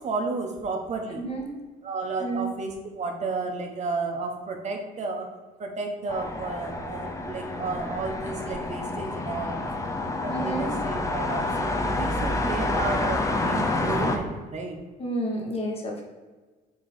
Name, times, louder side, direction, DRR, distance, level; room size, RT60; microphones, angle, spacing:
voice 1, 0.0-1.2 1.8-5.3 5.6-9.5 10.2-14.8, right 3 dB, 45° right, 3 dB, 1.0 m, -32 dB
voice 2, 1.2-1.5 2.2-2.5 10.3-10.7 15.0-16.1, right 1 dB, 35° left, 0 dB, 1.4 m, -30 dB
sound 1, 6.1-14.2, left 2 dB, 20° left, 0.8 m, -28 dB
7.4 x 3.0 x 4.3 m, 1.3 s
cardioid pair, 110°, 17 cm